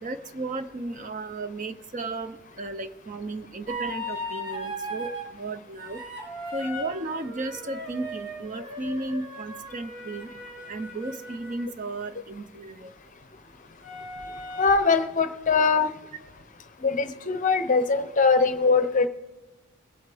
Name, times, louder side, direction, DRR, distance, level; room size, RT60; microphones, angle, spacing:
voice 1, 0.0-6.0 6.5-10.3 10.7-12.9, right 2 dB, 35° right, 10 dB, 0.5 m, -34 dB
Egan's Flute, 3.7-5.3 5.8-11.7 13.8-14.8, equal, 60° right, 4.2 m, -37 dB
voice 2, 14.6-15.9 16.8-19.1, left 4 dB, 35° left, 10 dB, 0.7 m, -22 dB
22.5 x 7.8 x 3.4 m, 1.2 s
head